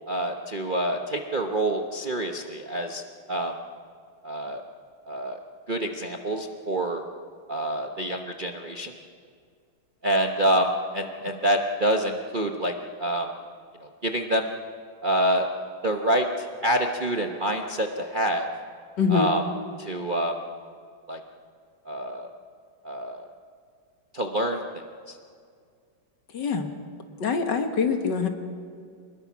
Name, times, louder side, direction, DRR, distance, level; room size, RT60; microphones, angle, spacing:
voice 1, 0.1-3.0 3.3-3.5 4.2-4.6 5.1-5.4 5.7-7.0 7.5-8.9 10.0-12.7 13.0-13.3 13.8-14.5 15.0-15.5 15.8-18.5 19.1-19.4 19.8-20.4 21.1-21.2 21.9-22.3 22.8-23.3 24.1-24.6 25.1-25.2, right 1 dB, 35° right, 3 dB, 0.8 m, -26 dB
voice 2, 19.0-19.3 26.3-26.7 27.2-28.3, left 6 dB, 60° left, 5 dB, 2.1 m, -24 dB
25.5 x 20.5 x 6.1 m, 2.2 s
omnidirectional pair, 2.2 m